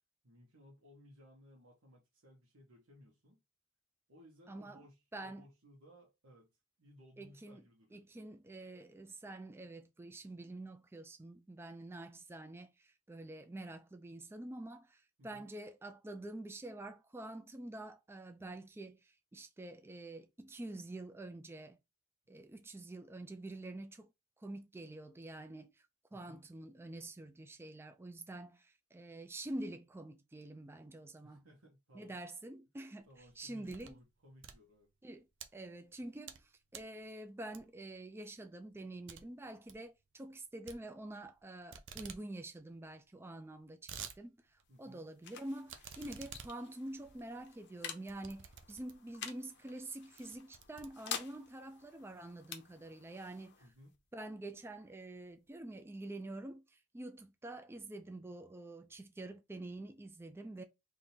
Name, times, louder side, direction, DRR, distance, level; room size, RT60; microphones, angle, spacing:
voice 1, 0.2-3.4 4.1-8.0 15.2-15.5 26.1-26.4 31.2-32.2 33.1-34.9 44.7-45.0 53.6-53.9, equal, 90° right, 1.2 m, -60 dB
voice 2, 4.5-4.8 5.1-5.4 7.2-7.6 7.9-21.8 22.3-24.1 24.4-31.5 31.9-33.1 33.4-34.0 35.0-35.2 35.5-53.6 54.1-60.6, right 1 dB, 10° right, 0.3 m, -47 dB
sound 1, 33.1-34.0 34.3-35.5 36.0-36.4 36.7-37.0 37.5-37.9 38.3-38.4 38.7-38.8 39.1-39.2 39.5-39.8 40.7-41.4 41.7-42.2 42.6-42.7 42.8-42.9 43.5-44.2 44.6-44.7 45.7-49.2 49.7-49.9 50.2-51.4, right 7 dB, 60° right, 0.6 m, -51 dB
sound 2, 44.5-55.8, left 8 dB, 55° left, 0.7 m, -50 dB
3.6 x 2.6 x 4.2 m
head